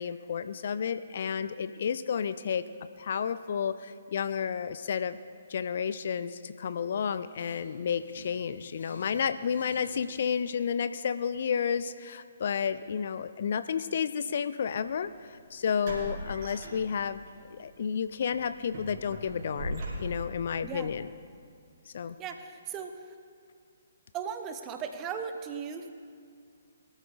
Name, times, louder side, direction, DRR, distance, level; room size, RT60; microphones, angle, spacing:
voice 1, 0.0-2.7 3.0-5.2 5.5-21.1 21.9-22.2, left 7 dB, 50° left, 13 dB, 0.4 m, -31 dB
sound 1, 7.3-10.4, left 2 dB, 70° left, 3.3 m, -53 dB
sound 2, 14.9-15.0 15.8-17.3 17.7-17.9 18.3-20.4, right 1 dB, 45° right, 3.4 m, -39 dB
voice 2, 22.2-22.9 24.1-25.9, right 7 dB, 20° right, 7 dB, 0.8 m, -37 dB
21.0 x 13.0 x 2.5 m, 2.2 s
figure-of-eight pair, 130°, 0 cm